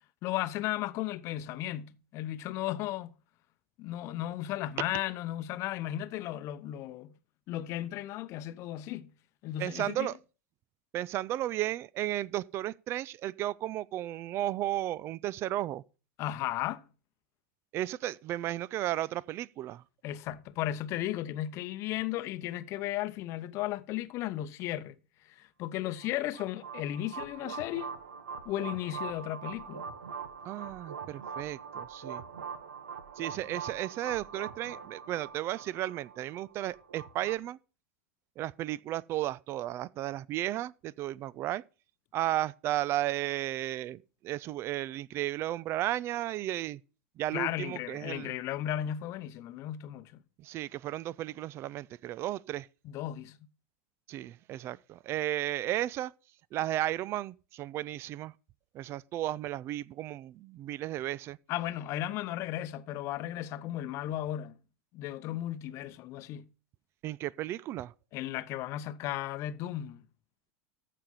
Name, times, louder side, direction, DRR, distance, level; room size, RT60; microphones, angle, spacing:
voice 1, 0.2-3.2 3.8-7.1 7.5-9.1 9.4-10.1 16.2-16.8 20.0-25.0 25.3-27.9 28.5-29.9 47.3-50.1 52.8-53.4 61.5-64.6 64.9-66.4 68.1-70.0, left 13 dB, 45° left, 0.8 m, -35 dB
voice 2, 9.6-10.2 10.9-15.8 17.7-19.8 30.4-32.2 33.2-37.6 38.4-41.6 42.1-46.8 47.2-48.4 50.4-52.7 54.1-56.1 56.5-58.3 58.7-61.4 67.0-67.9, right 14 dB, 40° right, 0.4 m, -34 dB
sound 1, 26.0-37.4, right 6 dB, 75° right, 1.1 m, -43 dB
14.0 x 5.1 x 5.5 m
hypercardioid pair, 90°, 7 cm